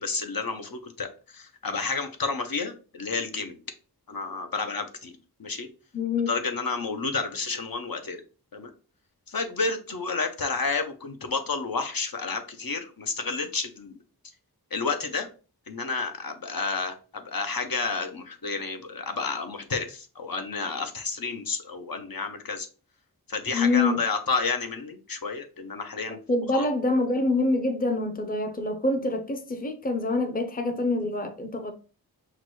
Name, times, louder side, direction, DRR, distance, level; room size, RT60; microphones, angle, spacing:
voice 1, 0.0-3.6 4.1-5.1 5.4-5.7 6.3-8.2 8.5-8.7 9.3-14.0 14.7-15.3 15.7-22.7 23.3-26.2 26.5-26.6, left 4 dB, 65° left, 0.7 m, -30 dB
voice 2, 5.9-6.3 23.5-24.0 26.1-31.7, left 2 dB, 25° left, 0.6 m, -26 dB
5.8 x 2.2 x 3.1 m
wide cardioid pair, 50°, 38 cm